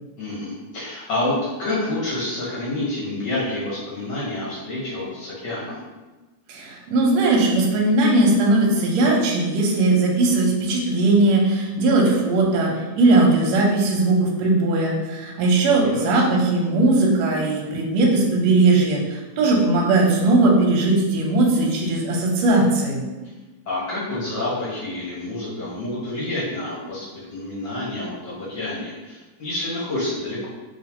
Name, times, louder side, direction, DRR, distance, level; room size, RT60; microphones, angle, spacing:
voice 1, 0.2-5.8 15.8-16.2 23.6-30.5, left 2 dB, 60° left, -7 dB, 1.1 m, -28 dB
voice 2, 6.5-23.0, right 2 dB, 75° right, -2 dB, 1.9 m, -19 dB
5.6 x 2.4 x 2.9 m, 1.2 s
omnidirectional pair, 3.3 m